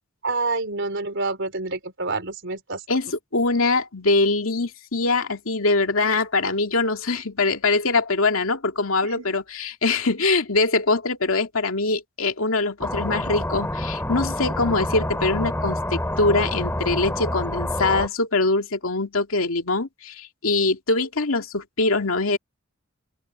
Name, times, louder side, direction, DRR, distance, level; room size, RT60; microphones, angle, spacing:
voice 1, 0.2-2.8 9.0-9.4, right 3 dB, 60° right, 4.1 m, -28 dB
voice 2, 2.9-22.4, left 3 dB, 85° left, 2.4 m, -23 dB
sound 1, 12.8-18.1, left 1 dB, 10° left, 4.3 m, -27 dB
head